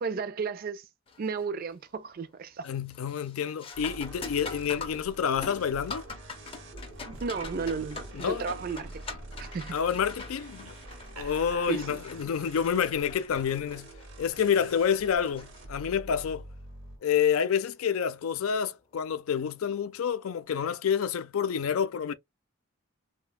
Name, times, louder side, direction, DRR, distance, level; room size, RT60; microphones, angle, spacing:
voice 1, 0.0-0.8 1.2-2.7 7.2-8.9 9.4-9.8 11.7-12.0, right 5 dB, 45° right, 0.3 m, -33 dB
sound 1, 1.1-1.5 1.9-2.3 2.6-16.2 18.7-18.8 19.6-19.8, left 4 dB, 25° left, 0.5 m, -44 dB
voice 2, 2.6-6.1 8.1-8.4 9.7-10.7 11.2-13.9 14.2-16.5 17.0-22.1, left 7 dB, 80° left, 0.4 m, -28 dB
sound 2, 3.7-17.0, right 1 dB, 60° right, 0.9 m, -46 dB
Laughter, 7.0-12.4, right 3 dB, 90° right, 0.9 m, -50 dB
3.2 x 2.1 x 2.2 m
head